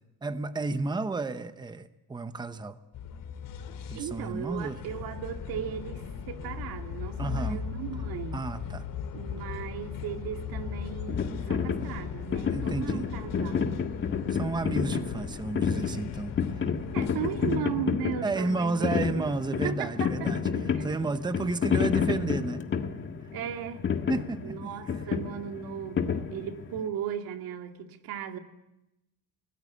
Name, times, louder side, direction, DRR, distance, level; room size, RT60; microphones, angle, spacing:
voice 1, 0.2-2.8 3.9-4.8 7.2-7.6 8.3-8.9 12.5-13.1 14.3-16.7 18.2-22.6 24.1-24.7, right 3 dB, 10° right, 10 dB, 0.9 m, -32 dB
sound 1, 2.9-17.6, left 7 dB, 70° left, 3.0 m, -38 dB
voice 2, 3.9-8.4 9.1-13.7 16.9-19.2 19.6-20.3 20.7-20.9 23.3-23.8 24.4-28.4, right 9 dB, 90° right, 5 dB, 2.2 m, -36 dB
sound 2, 11.1-26.8, left 6 dB, 35° left, 1.7 m, -30 dB
25.0 x 19.5 x 8.5 m, 0.92 s
cardioid pair, 135°, 35 cm